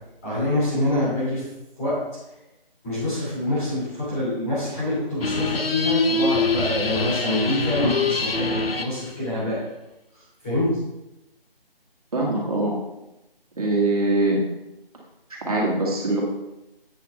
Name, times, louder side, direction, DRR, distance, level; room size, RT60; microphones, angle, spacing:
voice 1, 0.2-1.4 1.8-2.0 2.8-9.6 10.4-10.7, left 1 dB, 15° left, -11 dB, 2.7 m, -25 dB
sound 1, 5.2-9.0, left 3 dB, 75° left, 0.9 m, -24 dB
voice 2, 12.1-12.7 13.6-14.4 15.5-16.2, right 2 dB, 40° right, -3 dB, 2.3 m, -22 dB
8.5 x 8.3 x 3.2 m, 0.92 s
figure-of-eight pair, 170°, 30 cm